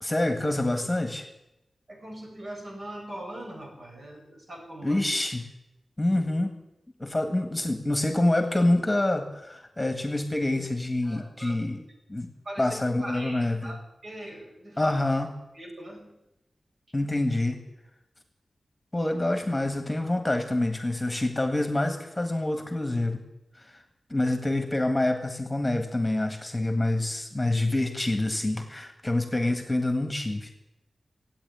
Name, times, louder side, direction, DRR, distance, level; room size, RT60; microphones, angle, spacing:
voice 1, 0.0-1.3 4.8-5.4 6.0-6.6 7.0-11.8 12.1-12.3 12.6-13.7 14.8-15.3 16.9-17.6 18.9-23.2 23.6-23.7 24.1-30.5, left 1 dB, 15° left, 6 dB, 1.8 m, -26 dB
voice 2, 1.9-5.0 11.0-11.6 12.4-13.8 14.0-14.9 15.5-16.1, right 1 dB, 50° right, 0 dB, 5.7 m, -41 dB
16.5 x 9.2 x 9.4 m, 0.89 s
wide cardioid pair, 100°, 0 cm